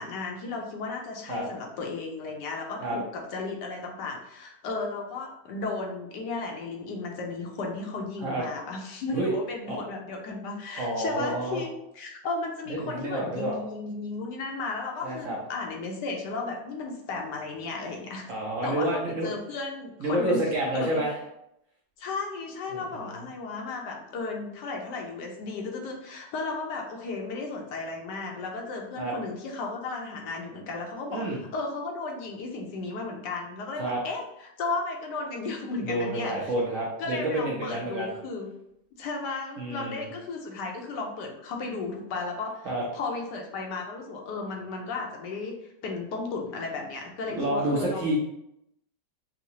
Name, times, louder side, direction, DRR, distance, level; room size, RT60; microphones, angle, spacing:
voice 1, 0.0-18.3 18.6-20.4 20.7-21.0 22.0-36.5 37.0-38.5 39.0-42.7 42.9-48.2, left 3 dB, 80° left, 1 dB, 1.3 m, -34 dB
voice 2, 10.8-11.6 12.7-13.6 15.0-15.4 18.3-19.3 20.0-21.1 22.7-23.2 29.0-29.1 31.1-31.4 33.8-34.0 35.8-38.1 39.6-40.0 42.6-42.8 47.3-48.2, right 1 dB, 55° right, -3 dB, 1.0 m, -29 dB
5.7 x 2.0 x 2.7 m, 0.81 s
omnidirectional pair, 1.9 m